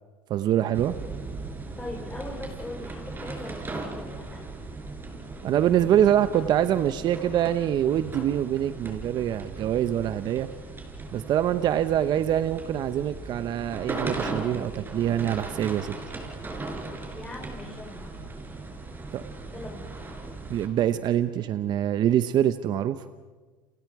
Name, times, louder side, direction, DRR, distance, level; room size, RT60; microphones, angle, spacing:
voice 1, 0.3-0.9 5.4-10.5 11.1-15.9 19.1-19.2 20.5-23.0, right 11 dB, 45° right, 12 dB, 0.9 m, -24 dB
sound 1, 0.7-20.7, right 3 dB, 20° right, 5.1 m, -38 dB
voice 2, 1.7-4.5 17.1-18.1 19.5-19.9, left 2 dB, 15° left, 0 dB, 4.7 m, -40 dB
30.0 x 27.0 x 4.9 m, 1.4 s
supercardioid pair, 95°, 10 cm